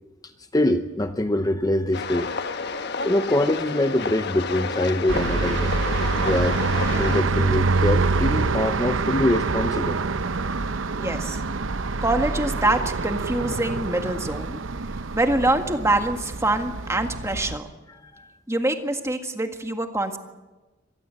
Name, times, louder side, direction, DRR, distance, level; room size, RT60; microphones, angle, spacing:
voice 1, 0.5-5.7 6.2-6.6 6.9-10.0 18.0-18.3, left 1 dB, 20° left, 8 dB, 0.8 m, -24 dB
sound 1, 1.9-7.2, left 4 dB, 60° left, 1.2 m, -30 dB
sound 2, 5.1-17.6, right 3 dB, 90° right, 0.8 m, -25 dB
voice 2, 11.0-11.4 12.0-14.6 15.1-17.7 18.5-20.2, right 2 dB, 15° right, 6 dB, 1.8 m, -25 dB
25.0 x 19.0 x 7.7 m, 1.2 s
head